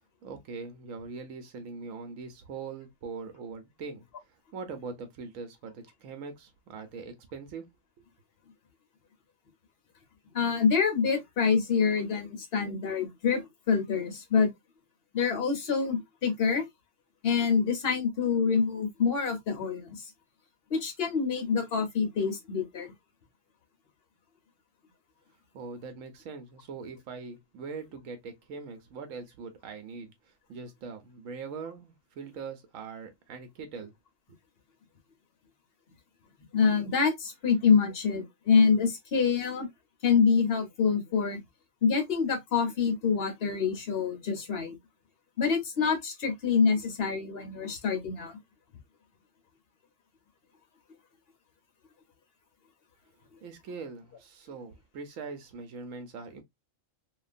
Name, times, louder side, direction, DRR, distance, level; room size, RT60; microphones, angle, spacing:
voice 1, 0.2-4.1 4.5-7.7 8.0-8.1 25.5-30.1 30.5-33.9 34.3-34.4 53.4-56.4, right 4 dB, 90° right, 1.1 m, -42 dB
voice 2, 10.3-14.5 15.1-16.7 17.2-20.1 20.7-22.9 36.5-39.7 40.0-41.4 41.8-44.7 45.4-48.4, left 5 dB, 50° left, 1.1 m, -26 dB
2.9 x 2.4 x 2.4 m
omnidirectional pair, 1.3 m